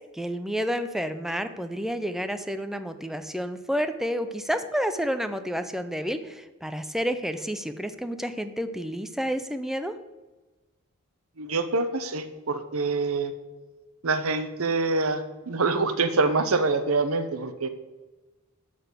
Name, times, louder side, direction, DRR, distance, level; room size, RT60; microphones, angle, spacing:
voice 1, 0.1-9.9, equal, ahead, 10 dB, 0.6 m, -30 dB
voice 2, 11.4-13.3 14.0-17.7, right 3 dB, 90° right, 10 dB, 1.0 m, -25 dB
12.5 x 4.2 x 8.0 m, 1.2 s
head